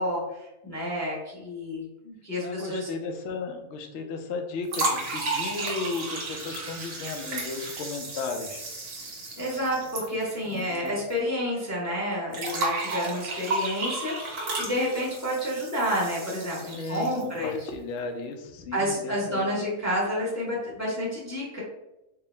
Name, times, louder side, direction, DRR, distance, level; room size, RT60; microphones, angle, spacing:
voice 1, 0.0-2.9 9.4-17.6 18.7-21.6, equal, 15° left, -5 dB, 0.7 m, -30 dB
voice 2, 2.4-8.6 10.4-11.0 16.7-19.5, left 4 dB, 65° left, 5 dB, 0.7 m, -35 dB
sound 1, 4.7-10.9 11.1-11.2 12.3-17.4, right 2 dB, 80° right, 1.5 m, -33 dB
4.5 x 2.0 x 3.2 m, 0.94 s
omnidirectional pair, 1.6 m